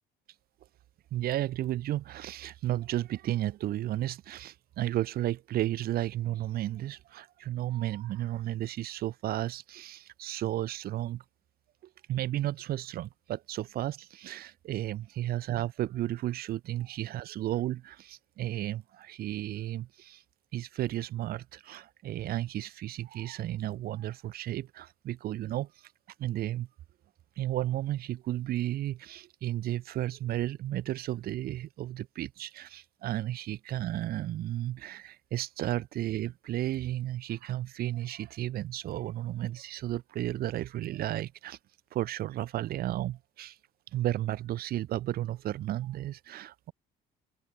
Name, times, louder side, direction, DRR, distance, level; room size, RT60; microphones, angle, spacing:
voice 1, 1.1-11.2 12.1-20.2 20.5-25.7 26.2-26.7 27.4-41.6 41.9-43.6 43.9-46.7, right 14 dB, 65° right, 0.8 m, -33 dB
open air
cardioid pair, 110°, 17 cm